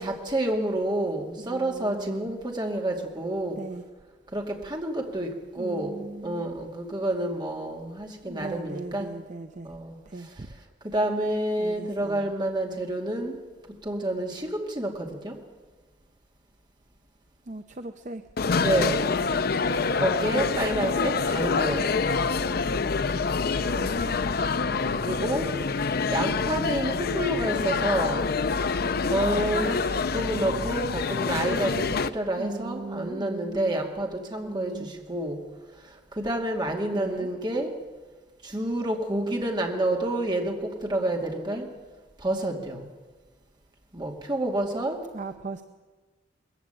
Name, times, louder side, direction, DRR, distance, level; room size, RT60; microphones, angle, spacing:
voice 1, 0.0-3.6 4.3-9.1 9.6-10.0 10.8-13.4 13.8-15.4 18.6-19.2 20.0-21.9 25.0-25.5 26.1-28.3 29.1-35.4 36.1-37.7 38.4-41.7 42.2-42.9 43.9-45.0, right 1 dB, 25° right, 1 dB, 2.5 m, -29 dB
voice 2, 1.4-2.3 3.6-3.8 5.6-6.5 8.2-9.7 10.1-10.5 11.6-12.3 17.5-18.2 18.7-19.0 19.3-19.9 20.9-21.0 21.6-21.9 23.6-24.2 32.4-33.9 34.5-34.9 36.9-37.3 45.1-45.6, right 2 dB, 40° right, 8 dB, 0.7 m, -39 dB
sound 1, 18.4-32.1, left 4 dB, 55° left, 0.5 m, -26 dB
20.5 x 15.0 x 9.0 m, 1.3 s
head